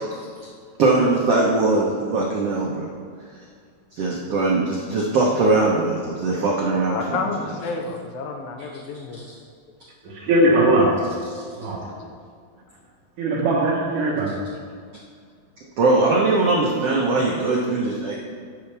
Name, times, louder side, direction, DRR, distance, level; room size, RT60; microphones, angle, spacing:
voice 1, 0.8-2.9 3.9-7.3 15.8-18.2, right 2 dB, 80° right, -3 dB, 1.3 m, -20 dB
voice 2, 6.9-9.2, left 4 dB, 75° left, 3 dB, 2.4 m, -30 dB
voice 3, 10.0-11.0 11.5-11.9 13.2-14.4, right 1 dB, 60° right, -1 dB, 2.4 m, -20 dB
13.0 x 9.7 x 3.4 m, 2.2 s
omnidirectional pair, 4.5 m